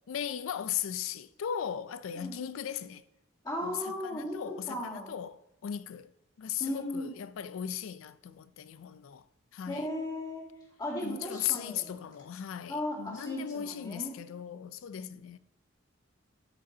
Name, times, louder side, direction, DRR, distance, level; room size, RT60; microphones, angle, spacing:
voice 1, 0.1-3.0 3.6-3.8 4.0-6.1 6.4-9.3 9.5-9.9 11.0-15.4, left 9 dB, 80° left, 0.4 m, -37 dB
voice 2, 3.4-5.1 6.6-7.1 9.7-10.4 10.8-12.0 12.7-14.1, left 1 dB, 20° left, 2.2 m, -36 dB
12.5 x 5.1 x 2.8 m
head